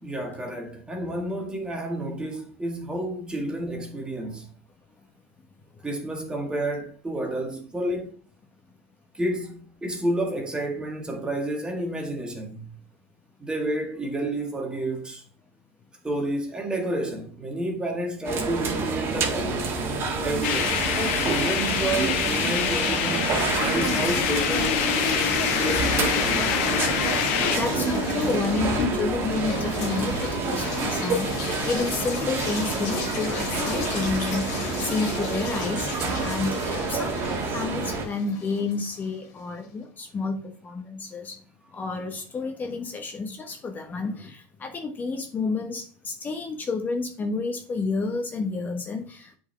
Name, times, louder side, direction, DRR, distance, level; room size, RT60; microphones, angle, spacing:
voice 1, 0.0-4.5 5.8-8.2 9.1-12.7 13.4-15.2 16.0-19.8 20.2-24.9 25.6-26.6, right 1 dB, 10° right, 1.8 m, -30 dB
sound 1, 18.2-38.1, right 4 dB, 35° right, 1.9 m, -28 dB
sound 2, 20.4-27.6, left 9 dB, 70° left, 1.1 m, -26 dB
sound 3, 23.2-39.2, left 6 dB, 50° left, 2.3 m, -33 dB
voice 2, 27.1-41.4 41.7-49.3, left 4 dB, 25° left, 1.3 m, -30 dB
8.0 x 4.7 x 3.4 m
supercardioid pair, 110°, 7 cm